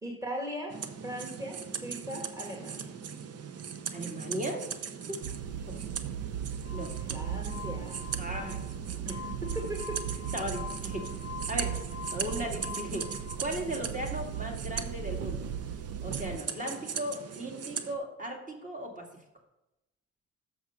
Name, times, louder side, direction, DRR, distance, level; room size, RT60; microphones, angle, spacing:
voice 1, 0.0-2.9 7.0-8.1 9.1-10.2 13.7-13.8, right 1 dB, 10° right, 0 dB, 1.8 m, -39 dB
sound 1, 0.7-17.9, right 7 dB, 55° right, 0.8 m, -40 dB
voice 2, 3.9-4.7 5.1-5.2 5.7-5.9 6.7-6.9 8.2-8.6 9.1-9.2 10.3-11.1 11.5-11.8 12.1-13.1 13.4-15.4 16.0-19.1, right 1 dB, 25° right, 2 dB, 2.2 m, -36 dB
sound 2, 5.2-16.4, right 8 dB, 85° right, 0.5 m, -37 dB
Glass, 6.6-13.4, left 7 dB, 55° left, 0.6 m, -45 dB
7.1 x 6.2 x 6.4 m, 0.91 s
cardioid pair, 90°, 30 cm